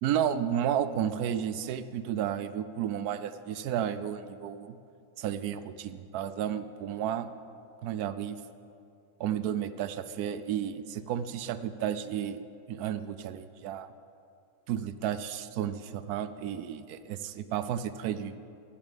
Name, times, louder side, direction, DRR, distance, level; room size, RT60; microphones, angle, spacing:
voice 1, 0.0-4.7 5.2-7.3 7.8-8.4 9.2-13.9 14.7-18.4, right 9 dB, 85° right, 12 dB, 1.1 m, -32 dB
12.0 x 7.1 x 8.9 m, 2.5 s
omnidirectional pair, 1.6 m